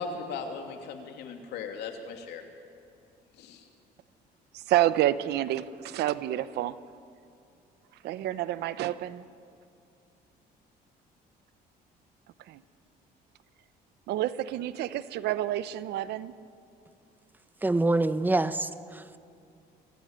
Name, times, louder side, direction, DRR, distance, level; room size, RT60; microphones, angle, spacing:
voice 1, 0.0-2.4 3.4-3.7, left 5 dB, 80° left, 4 dB, 3.0 m, -38 dB
voice 2, 4.5-6.7 8.0-9.2 12.5-12.6 14.1-16.3, right 13 dB, 75° right, 15 dB, 0.9 m, -28 dB
voice 3, 17.6-19.2, right 2 dB, 10° right, 13 dB, 0.9 m, -26 dB
24.5 x 17.0 x 9.0 m, 2.5 s
cardioid pair, 110°, 17 cm